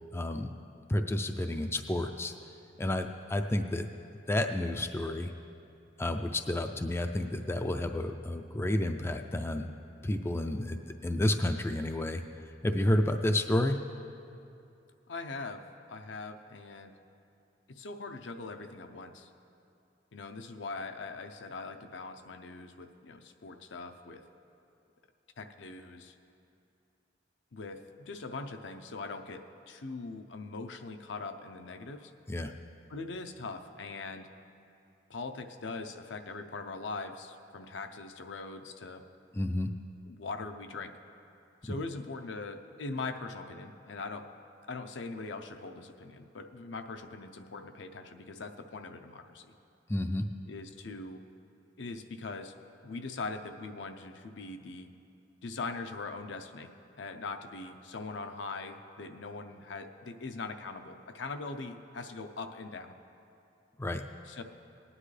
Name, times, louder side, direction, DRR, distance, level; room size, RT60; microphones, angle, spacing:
voice 1, 0.1-0.5 0.9-2.3 2.8-3.9 4.3-5.3 6.0-9.7 10.0-13.8 32.3-32.5 39.3-39.7 49.9-50.3 63.8-64.0, left 1 dB, 15° left, 6 dB, 0.3 m, -30 dB
voice 2, 15.1-15.6 15.9-16.9 17.7-19.3 20.1-24.2 25.4-26.1 27.5-32.1 32.9-34.3 35.1-39.0 40.1-40.9 41.6-44.3 44.7-49.5 50.5-51.2 51.8-52.5 52.8-54.9 55.4-56.7 57.0-62.9 64.3-64.4, left 3 dB, 75° left, 7 dB, 0.6 m, -41 dB
19.0 x 9.8 x 3.3 m, 2.7 s
head